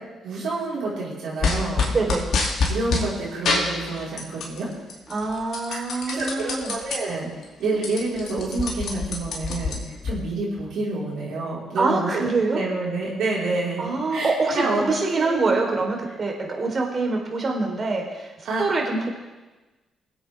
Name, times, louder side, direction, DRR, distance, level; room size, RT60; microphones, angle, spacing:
voice 1, 0.2-2.2 2.7-4.7 5.7-7.3 7.6-12.1 12.5-15.6 18.4-18.6, right 2 dB, 65° right, -6 dB, 4.4 m, -28 dB
sound 1, 1.4-3.1 3.4-4.6 4.9-7.0 7.4-7.5 7.7-10.1, left 4 dB, 60° left, 2.6 m, -26 dB
voice 2, 1.9-2.2 5.1-6.7 11.8-12.6 13.8-18.3 18.6-19.1, right 3 dB, 40° right, 1 dB, 3.6 m, -25 dB
22.5 x 8.5 x 3.5 m, 1.2 s
hypercardioid pair, 45°, 0 cm